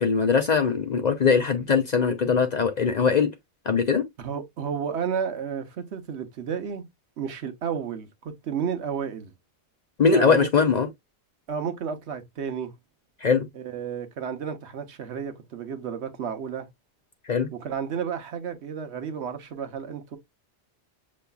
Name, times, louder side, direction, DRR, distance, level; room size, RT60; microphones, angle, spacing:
voice 1, 0.0-3.3 3.7-4.1 10.0-10.9 13.2-13.5 17.3-17.5, left 5 dB, 50° left, 0.6 m, -21 dB
voice 2, 4.2-6.9 7.2-9.3 10.1-10.7 11.5-12.7 13.5-16.7 17.5-20.2, right 7 dB, 75° right, 1.1 m, -32 dB
6.7 x 3.1 x 2.3 m
omnidirectional pair, 1.2 m